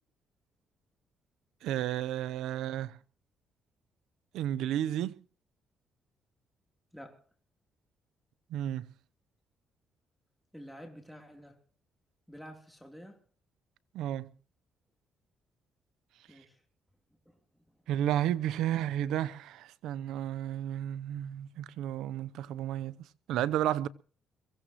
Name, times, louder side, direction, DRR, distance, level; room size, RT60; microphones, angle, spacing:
voice 1, 1.6-3.0 4.3-5.2 8.5-8.9 13.9-14.3 17.9-23.0 23.3-23.9, right 11 dB, 85° right, 0.8 m, -32 dB
voice 2, 6.9-7.2 10.5-11.6 12.3-13.3 16.3-16.6 17.3-17.4, equal, ahead, 3.5 m, -49 dB
23.0 x 16.5 x 3.1 m
cardioid pair, 90°, 0 cm